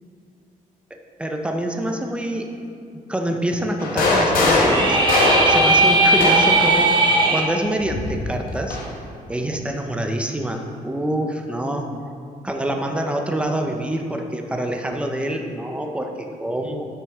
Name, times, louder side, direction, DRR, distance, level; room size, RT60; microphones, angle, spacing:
voice 1, 0.9-2.5 3.1-5.0 5.5-6.9 7.3-8.8 9.3-11.9 12.4-16.9, right 1 dB, 10° right, 3 dB, 0.6 m, -26 dB
sound 1, 3.8-6.7 7.8-8.9, left 2 dB, 80° left, 1.3 m, -21 dB
sound 2, 4.5-7.4, right 2 dB, 30° right, 1.2 m, -17 dB
8.8 x 5.9 x 3.6 m, 2.3 s
cardioid pair, 125°, 14 cm